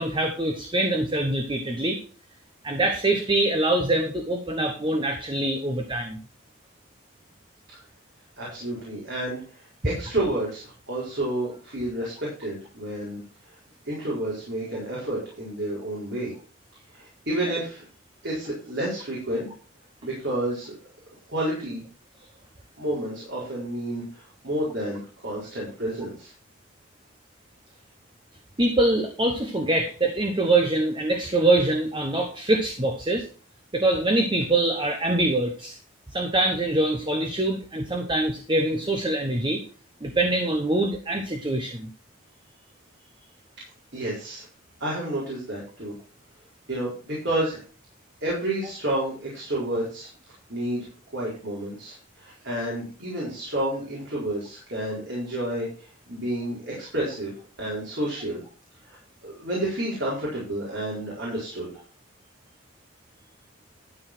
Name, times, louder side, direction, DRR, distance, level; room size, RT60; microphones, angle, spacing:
voice 1, 0.0-2.0 2.6-6.2 28.6-33.3 33.7-35.8 36.1-39.6 40.0-41.9, right 2 dB, 25° right, 4 dB, 1.1 m, -24 dB
voice 2, 8.4-13.2 13.9-16.3 16.9-17.8 18.2-19.5 20.0-20.7 21.3-21.8 22.8-26.3 43.9-44.5 44.8-45.9 46.7-47.6 48.2-50.1 50.5-50.9 51.1-58.4 58.8-61.7, right 1 dB, 55° right, -5 dB, 4.4 m, -30 dB
12.5 x 4.8 x 6.1 m, 0.38 s
head